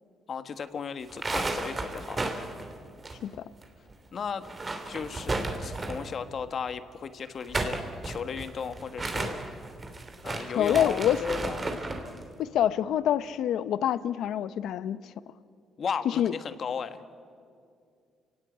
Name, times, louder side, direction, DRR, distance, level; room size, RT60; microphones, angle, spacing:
voice 1, 0.3-2.3 4.1-4.4 4.8-9.4 10.2-11.7 15.8-17.0, left 6 dB, 50° left, 11 dB, 1.4 m, -35 dB
sound 1, 1.0-3.6 3.9-4.0 4.4-6.1 7.2-12.1, right 2 dB, 30° right, 3.0 m, -33 dB
voice 2, 10.6-11.2 12.4-15.0 16.2-16.3, left 10 dB, 80° left, 15 dB, 0.8 m, -26 dB
29.0 x 17.5 x 9.4 m, 2.3 s
cardioid pair, 90°, 0 cm